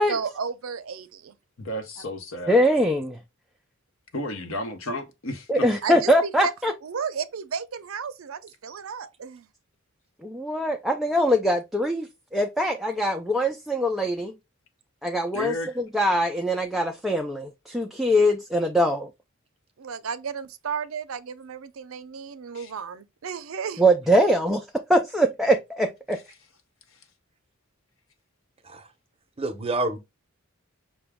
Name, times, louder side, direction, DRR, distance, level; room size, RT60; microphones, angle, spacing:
voice 1, 0.1-1.4 5.8-6.5 6.8-9.5 19.8-23.8, right 6 dB, 75° right, 0.5 m, -33 dB
voice 2, 1.6-2.6 4.1-5.7 15.3-15.8 22.5-22.7, left 1 dB, 70° left, 0.8 m, -33 dB
voice 3, 2.5-3.2 5.5-6.7 10.2-14.3 15.0-15.5 15.9-19.1 23.8-26.2, equal, ahead, 0.3 m, -22 dB
voice 4, 29.4-30.0, right 2 dB, 30° right, 0.6 m, -28 dB
5.9 x 2.2 x 3.4 m
head